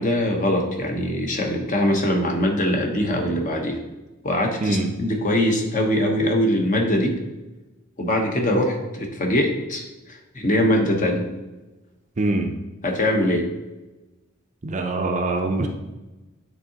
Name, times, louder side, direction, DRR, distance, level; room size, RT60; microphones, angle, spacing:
voice 1, 0.0-3.8 4.2-7.2 8.0-11.3 12.8-13.5, left 1 dB, 40° left, 1 dB, 1.0 m, -22 dB
voice 2, 12.2-12.5 14.6-15.7, right 2 dB, 35° right, 4 dB, 0.5 m, -23 dB
9.2 x 3.7 x 2.8 m, 1.1 s
head